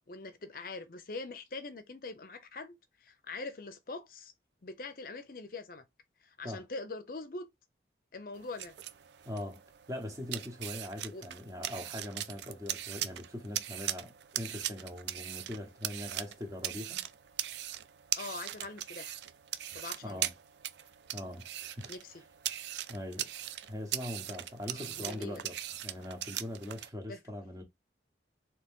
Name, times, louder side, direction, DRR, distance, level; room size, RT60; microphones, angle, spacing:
voice 1, 0.1-4.3 4.6-5.8 6.2-7.5 8.1-8.8 11.1-11.2 18.2-19.2 19.7-20.2 21.9-22.2 24.7-25.4 27.1-27.2, left 3 dB, 50° left, 0.6 m, -43 dB
sound 1, 8.3-26.9, right 12 dB, 70° right, 0.4 m, -40 dB
voice 2, 9.2-9.6 9.9-17.0 20.0-20.3 21.1-21.9 22.9-23.3 23.7-25.6 25.8-27.6, left 1 dB, 20° right, 1.1 m, -41 dB
4.0 x 2.9 x 3.6 m
head